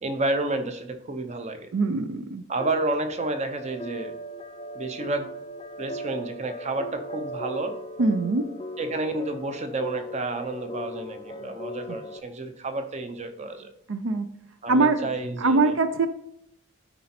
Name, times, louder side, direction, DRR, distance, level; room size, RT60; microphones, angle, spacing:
voice 1, 0.0-1.7 2.5-4.2 4.7-5.3 5.8-7.8 8.8-13.7 14.6-15.8, right 2 dB, 30° right, 8 dB, 0.7 m, -30 dB
voice 2, 1.7-2.4 8.0-8.4 13.9-14.3 14.7-15.1 15.4-16.1, right 3 dB, 70° right, 10 dB, 0.5 m, -22 dB
sound 1, 2.6-12.2, equal, 25° left, 0.4 m, -38 dB
9.7 x 4.3 x 4.2 m, 0.75 s
head